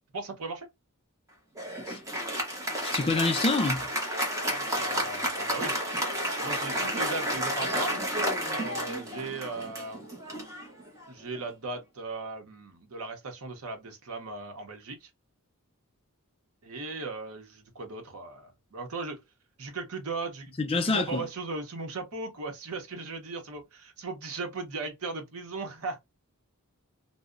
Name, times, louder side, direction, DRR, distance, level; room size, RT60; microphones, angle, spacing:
voice 1, 0.1-0.7 4.8-5.7 6.4-7.9 8.5-10.0 11.1-15.1 16.6-19.2 19.6-20.5 20.8-26.0, right 3 dB, 70° right, 0.8 m, -37 dB
Applause, 1.6-11.4, equal, 15° right, 0.8 m, -31 dB
voice 2, 2.8-3.9 20.6-21.2, left 3 dB, 25° left, 0.4 m, -26 dB
2.6 x 2.0 x 2.4 m
head